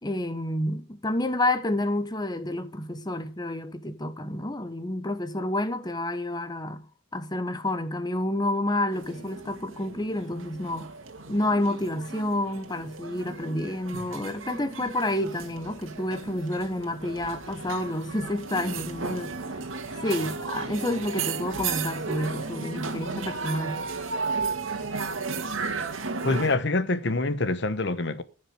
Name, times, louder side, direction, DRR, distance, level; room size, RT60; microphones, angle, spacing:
voice 1, 0.0-6.8 7.1-10.9 11.3-19.3 20.0-23.8, left 1 dB, 20° left, 1.1 m, -29 dB
sound 1, 8.9-26.6, right 4 dB, 90° right, 1.8 m, -34 dB
voice 2, 26.2-28.2, left 2 dB, 60° left, 1.1 m, -25 dB
15.0 x 6.5 x 6.2 m
head